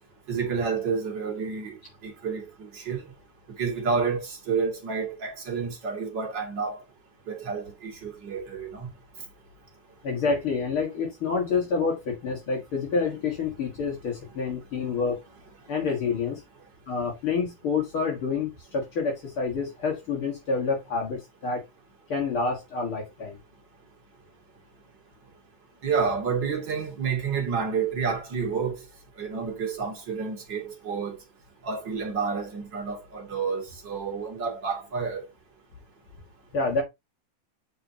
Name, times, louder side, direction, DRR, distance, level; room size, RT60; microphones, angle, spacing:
voice 1, 0.3-1.7 2.0-3.0 3.6-6.8 7.3-8.9 25.8-28.7 29.2-31.2 31.7-35.2, right 5 dB, 35° right, 2.8 m, -29 dB
voice 2, 10.0-15.2 15.7-16.4 16.9-21.6 22.1-23.4 36.5-36.8, left 4 dB, 50° left, 2.2 m, -28 dB
8.2 x 5.0 x 2.9 m
omnidirectional pair, 3.5 m